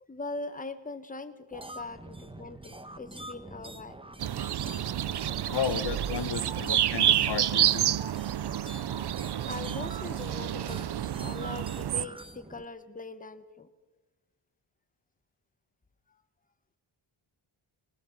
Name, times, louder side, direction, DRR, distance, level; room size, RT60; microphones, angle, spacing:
voice 1, 0.1-4.0 5.0-5.5 9.5-13.7, left 3 dB, 15° left, 9 dB, 1.3 m, -41 dB
sound 1, 1.5-12.6, right 2 dB, 10° right, 1.2 m, -46 dB
sound 2, 4.2-12.0, right 11 dB, 55° right, 0.6 m, -29 dB
voice 2, 5.3-7.9, left 8 dB, 55° left, 12 dB, 1.0 m, -33 dB
19.5 x 19.5 x 7.4 m, 1.3 s
wide cardioid pair, 105°, 49 cm